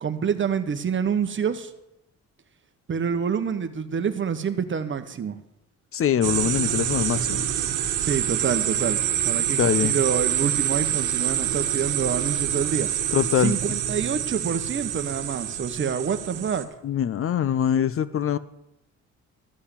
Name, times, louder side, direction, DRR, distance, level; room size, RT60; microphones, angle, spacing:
voice 1, 0.0-1.7 2.9-5.4 8.0-12.9 13.4-16.7, right 7 dB, 40° right, 10 dB, 1.1 m, -27 dB
voice 2, 5.9-7.5 9.6-9.9 13.1-13.6 16.8-18.4, left 9 dB, 45° left, 16 dB, 0.5 m, -23 dB
sound 1, 6.2-16.6, right 10 dB, 85° right, 1.3 m, -26 dB
13.5 x 5.7 x 8.2 m, 0.89 s
cardioid pair, 90°, 30 cm